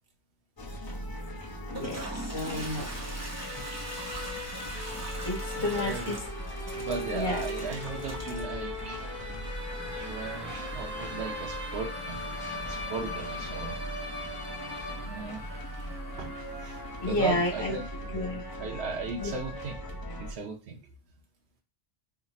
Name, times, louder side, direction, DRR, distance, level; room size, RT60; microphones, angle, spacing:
sound 1, 0.6-20.3, equal, 25° left, 0.6 m, -40 dB
Toilet flush, 1.6-18.3, right 2 dB, 15° right, 0.8 m, -44 dB
voice 1, 1.7-3.2 5.2-6.2 7.1-7.4 17.0-17.7 18.1-18.4 19.2-19.3, left 2 dB, 60° left, -3 dB, 1.5 m, -31 dB
sound 2, 3.4-15.5, left 1 dB, 55° right, 1.4 m, -40 dB
voice 2, 5.6-6.2 6.5-9.4 9.8-12.2 12.6-14.0 15.0-15.6 16.2-16.3 16.6-16.8 17.0-18.2 18.6-19.8 20.2-20.8, right 4 dB, 85° right, 1 dB, 0.9 m, -37 dB
3.4 x 2.4 x 4.1 m, 0.31 s
omnidirectional pair, 1.1 m